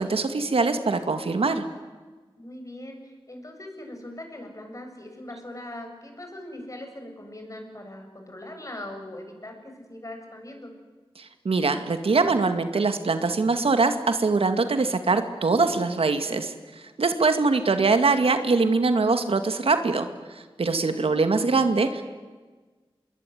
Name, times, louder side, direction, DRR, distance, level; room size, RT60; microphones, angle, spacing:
voice 1, 0.0-1.6 11.4-16.5 17.0-20.1 20.6-22.0, right 4 dB, 85° right, 8 dB, 2.2 m, -23 dB
voice 2, 2.4-10.7 20.9-21.1, left 1 dB, 35° left, 4 dB, 7.3 m, -40 dB
26.0 x 21.5 x 9.6 m, 1.4 s
wide cardioid pair, 70°, 10 cm